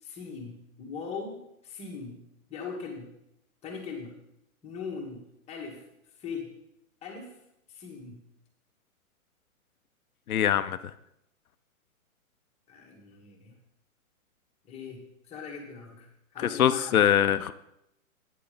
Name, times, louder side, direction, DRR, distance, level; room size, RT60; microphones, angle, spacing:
voice 1, 0.0-2.2 2.5-3.1 3.6-4.1 4.6-5.2 5.5-5.8 6.2-6.5 7.0-7.3 7.7-8.2 12.7-13.5 14.7-17.0, left 5 dB, 15° left, 0 dB, 1.5 m, -40 dB
voice 2, 10.3-10.9 16.4-17.5, left 10 dB, 85° left, 12 dB, 0.7 m, -23 dB
8.8 x 7.1 x 5.0 m, 0.81 s
hypercardioid pair, 150°, 42 cm